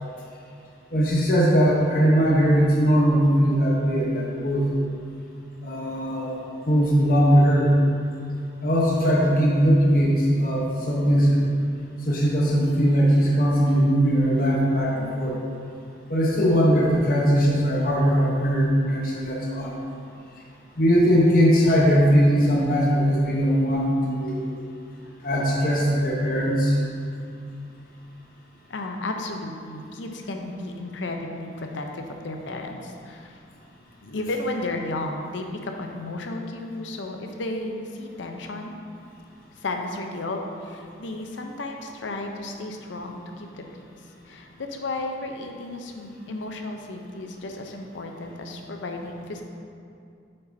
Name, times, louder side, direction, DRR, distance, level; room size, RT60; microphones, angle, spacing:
voice 1, 0.9-4.7 5.6-6.4 6.7-7.7 8.6-11.4 12.1-15.3 16.1-19.7 20.8-24.5 25.2-26.8, equal, 50° left, -4 dB, 0.9 m, -20 dB
voice 2, 28.7-33.4 34.0-38.8 39.6-43.8 44.3-49.4, left 2 dB, 85° left, 3 dB, 0.6 m, -33 dB
8.1 x 5.4 x 2.7 m, 2.4 s
head